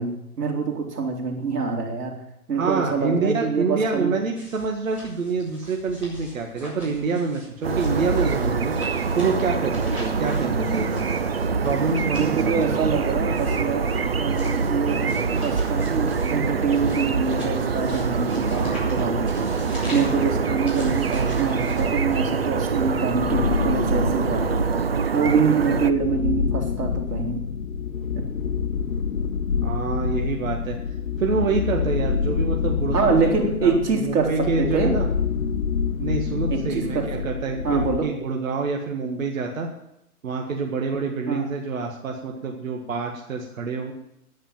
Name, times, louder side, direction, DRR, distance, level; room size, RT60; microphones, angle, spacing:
voice 1, 0.0-2.2 2.5-4.2 12.1-19.2 19.7-24.6 25.1-27.4 28.2-28.3 32.9-35.0 36.5-37.1 37.6-38.1 41.3-41.5, right 5 dB, 85° right, 2 dB, 3.9 m, -25 dB
voice 2, 2.5-8.7 9.1-11.2 11.6-12.9 29.6-30.8 31.2-35.1 36.0-39.7 40.2-43.9, right 4 dB, 60° right, 1 dB, 1.9 m, -27 dB
sound 1, 4.3-22.5, left 1 dB, 5° right, 5.0 m, -42 dB
sound 2, 7.6-25.9, right 5 dB, 40° right, 0.5 m, -24 dB
sound 3, 23.1-24.8 25.4-38.0, left 6 dB, 60° left, 1.3 m, -27 dB
11.0 x 10.0 x 7.5 m, 0.80 s
hypercardioid pair, 170°, 46 cm